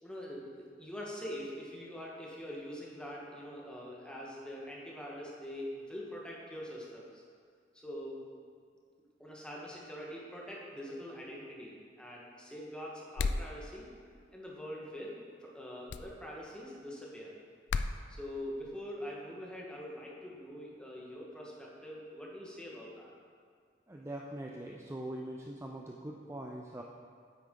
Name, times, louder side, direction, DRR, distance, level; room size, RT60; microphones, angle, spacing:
voice 1, 0.0-7.2 7.7-8.2 9.2-13.9 14.3-17.4 18.1-23.1, equal, 5° left, -4 dB, 1.3 m, -44 dB
sound 1, 13.2-13.5 15.9-16.1 17.7-17.9, left 4 dB, 75° left, 0.4 m, -32 dB
voice 2, 23.9-26.8, right 1 dB, 15° right, 0 dB, 0.4 m, -42 dB
9.2 x 8.3 x 3.7 m, 2.1 s
head